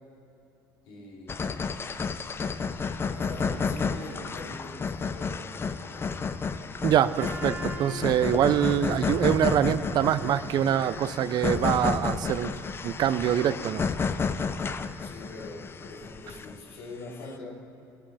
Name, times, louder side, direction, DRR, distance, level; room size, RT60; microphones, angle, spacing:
voice 1, 0.8-1.8 3.1-6.2 15.0-17.6, left 2 dB, 80° left, -4 dB, 3.6 m, -43 dB
sound 1, 1.3-16.7, left 5 dB, 30° left, 0.6 m, -31 dB
voice 2, 6.8-12.5 12.8-13.9, right 10 dB, 55° right, 14 dB, 0.6 m, -24 dB
Trumpet, 7.2-12.2, equal, 15° right, 2.0 m, -45 dB
18.0 x 9.0 x 5.6 m, 2.9 s
supercardioid pair, 90°, 8 cm